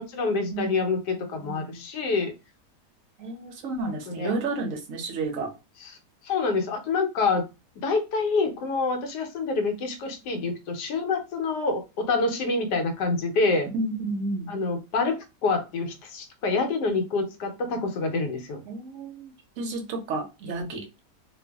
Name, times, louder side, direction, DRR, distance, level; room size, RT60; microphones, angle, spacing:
voice 1, 0.0-2.3 4.2-4.3 6.3-7.5 7.8-13.7 14.5-15.2 15.4-18.6, left 3 dB, 80° left, 5 dB, 1.2 m, -26 dB
voice 2, 0.5-0.8 1.3-1.8 3.2-5.5 13.7-14.6 18.7-20.8, right 3 dB, 65° right, 3 dB, 0.8 m, -31 dB
2.6 x 2.4 x 2.2 m, 0.27 s
omnidirectional pair, 1.8 m